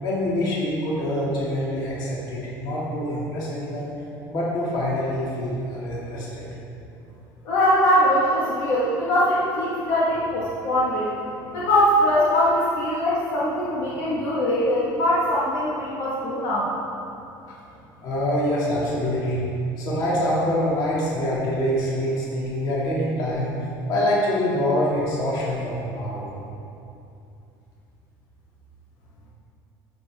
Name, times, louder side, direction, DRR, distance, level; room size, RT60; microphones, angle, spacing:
voice 1, 0.0-3.9 4.3-6.5 18.0-19.4 19.8-23.5 23.9-26.3, left 1 dB, 50° left, -6 dB, 2.4 m, -25 dB
voice 2, 7.5-11.1 11.5-16.7, equal, 70° left, -7 dB, 1.7 m, -21 dB
13.0 x 7.0 x 3.6 m, 2.7 s
cardioid pair, 155°, 9 cm